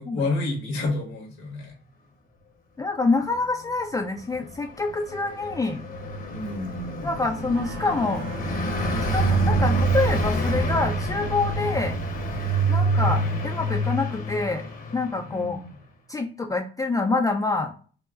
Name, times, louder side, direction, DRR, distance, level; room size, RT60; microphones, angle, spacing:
voice 1, 0.0-1.7 6.3-7.1 13.0-13.4 15.3-15.7, left 2 dB, 90° left, 0 dB, 1.6 m, -30 dB
voice 2, 2.8-5.8 7.0-8.3 9.1-12.0 12.7-14.6 14.9-15.6 16.1-17.7, left 3 dB, 15° left, 3 dB, 0.4 m, -26 dB
Car passing by, 4.4-15.4, right 2 dB, 45° left, 0.8 m, -26 dB
sound 1, 7.5-10.4, right 4 dB, 60° right, 0.7 m, -42 dB
4.6 x 2.0 x 2.5 m, 0.41 s
cardioid pair, 90°, 20 cm